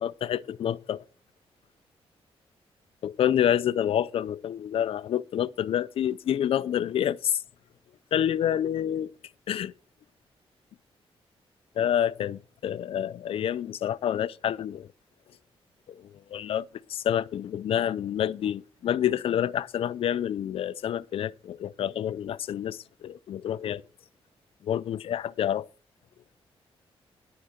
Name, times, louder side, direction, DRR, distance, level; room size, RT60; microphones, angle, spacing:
voice 1, 0.0-1.0 3.0-7.4 8.1-9.1 9.5-9.7 11.8-14.9 15.9-23.8 24.6-25.7, left 10 dB, 65° left, 0.4 m, -28 dB
10.5 x 5.9 x 6.4 m
cardioid pair, 125°, 10 cm